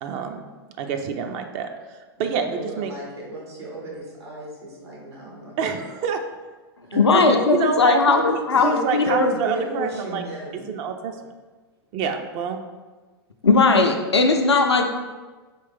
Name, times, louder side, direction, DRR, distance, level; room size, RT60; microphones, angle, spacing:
voice 1, 0.0-0.5 0.8-2.9 5.6-6.2 7.1-10.2 10.7-11.3 11.9-12.6, right 6 dB, 40° right, 6 dB, 0.4 m, -27 dB
voice 2, 2.2-5.7 6.9-7.0 8.5-10.7, right 1 dB, 75° right, -4 dB, 1.3 m, -34 dB
voice 3, 7.0-9.3 13.4-14.8, left 3 dB, 85° left, 4 dB, 0.4 m, -18 dB
4.3 x 3.1 x 3.5 m, 1.3 s
figure-of-eight pair, 100°, 14 cm